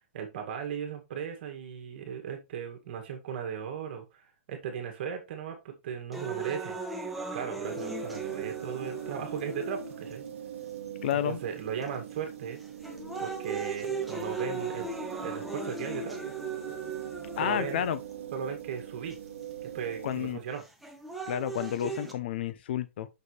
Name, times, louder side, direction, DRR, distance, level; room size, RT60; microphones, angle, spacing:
voice 1, 0.1-6.8 7.3-10.2 11.1-12.6 13.2-14.9 15.2-16.2 17.4-17.9 18.3-19.2 19.6-20.6, right 7 dB, 45° right, 2.1 m, -37 dB
sound 1, 6.1-10.1 10.9-11.0 11.8-12.1 12.6-18.1 19.1-19.2 20.6-22.1, right 4 dB, ahead, 0.7 m, -37 dB
sound 2, 7.6-20.3, right 9 dB, 65° right, 1.1 m, -42 dB
voice 2, 11.0-11.4 17.4-18.0 20.0-20.4 21.3-23.1, left 10 dB, 50° left, 0.6 m, -30 dB
6.2 x 5.2 x 3.2 m
hypercardioid pair, 165°, 7 cm